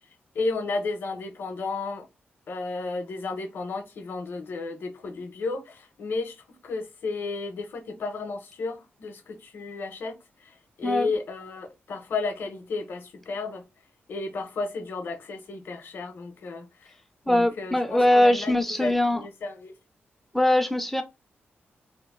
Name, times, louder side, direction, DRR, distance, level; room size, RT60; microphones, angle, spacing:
voice 1, 0.3-2.1 2.5-10.2 10.4-13.7 14.1-16.9 17.2-19.7, left 3 dB, 55° left, 0.7 m, -33 dB
voice 2, 10.8-11.1 17.3-19.2 20.3-21.0, left 1 dB, 5° left, 0.3 m, -22 dB
3.0 x 2.4 x 3.5 m
wide cardioid pair, 175°, 4 cm